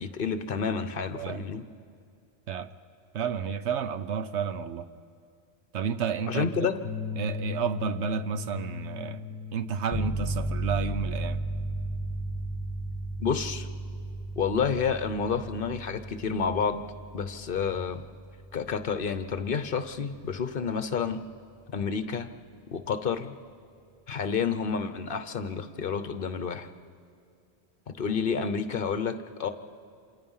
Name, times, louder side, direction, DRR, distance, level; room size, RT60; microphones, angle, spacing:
voice 1, 0.0-1.6 6.3-6.8 13.2-13.7 14.4-16.8 17.1-18.0 18.5-21.2 21.7-22.3 22.7-23.3 24.1-26.7 27.9-29.5, left 6 dB, 55° left, 1.1 m, -29 dB
voice 2, 3.1-4.9 5.7-6.7 7.2-9.2 9.5-11.4, right 7 dB, 90° right, 1.1 m, -31 dB
sound 1, 6.8-15.3, left 6 dB, 85° left, 1.0 m, -40 dB
sound 2, 9.9-20.4, right 1 dB, 10° left, 1.3 m, -35 dB
27.0 x 27.0 x 5.6 m
omnidirectional pair, 1.1 m